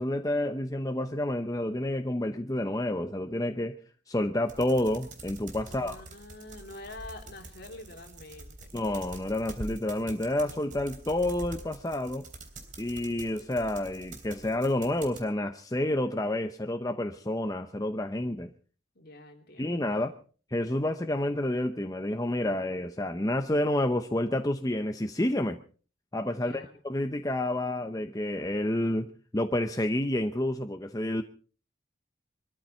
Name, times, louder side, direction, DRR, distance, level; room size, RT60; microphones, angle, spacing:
voice 1, 0.0-3.8 4.1-6.0 8.7-12.2 12.8-18.5 19.6-20.1 20.5-25.6 26.1-29.1 29.3-31.2, left 1 dB, 20° left, 6 dB, 0.7 m, -29 dB
sound 1, 4.5-15.2, right 2 dB, 40° right, 3.3 m, -46 dB
voice 2, 5.6-8.7 18.9-20.2 26.4-26.8, left 2 dB, 50° left, 3 dB, 3.3 m, -47 dB
23.5 x 13.5 x 4.4 m, 0.40 s
head